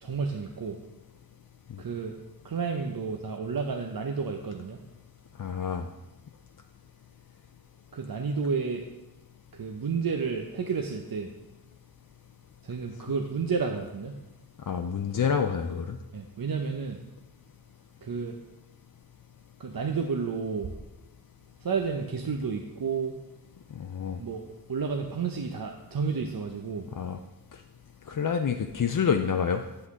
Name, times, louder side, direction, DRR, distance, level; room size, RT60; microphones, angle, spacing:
voice 1, 0.0-0.8 1.8-2.2 2.4-4.8 7.9-8.9 9.6-11.3 12.6-14.2 16.1-17.0 18.0-18.4 19.6-20.7 21.6-23.1 24.2-24.4 24.7-26.9, right 5 dB, 65° right, 3 dB, 0.7 m, -31 dB
voice 2, 5.4-5.9 14.7-16.0 23.7-24.2 27.0-27.2 28.1-29.6, left 7 dB, 55° left, 6 dB, 0.5 m, -28 dB
7.9 x 7.8 x 3.6 m, 1.0 s
wide cardioid pair, 50°, 38 cm